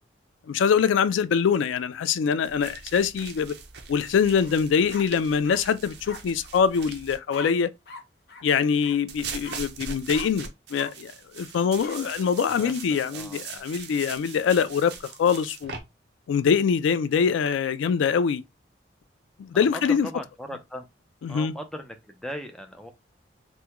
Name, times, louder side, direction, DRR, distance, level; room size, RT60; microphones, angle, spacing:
voice 1, 0.5-3.6 3.9-7.7 8.4-14.9 15.2-15.7 16.3-18.4 19.4-20.1 21.2-21.5, left 6 dB, 80° left, 0.3 m, -24 dB
sound 1, 2.4-7.2 9.1-15.8, right 5 dB, 60° right, 0.6 m, -41 dB
sound 2, 4.4-4.6 4.9-5.6 6.0-6.2 7.3-7.5 7.9-8.0 8.3-8.4 8.8-9.0 9.4-9.6 10.1-10.3 10.7-10.9 11.8-12.0, left 4 dB, 55° left, 0.7 m, -41 dB
voice 2, 12.5-12.8 13.1-13.7 19.5-20.9 21.3-22.9, equal, 5° left, 0.4 m, -38 dB
3.5 x 2.1 x 2.9 m
head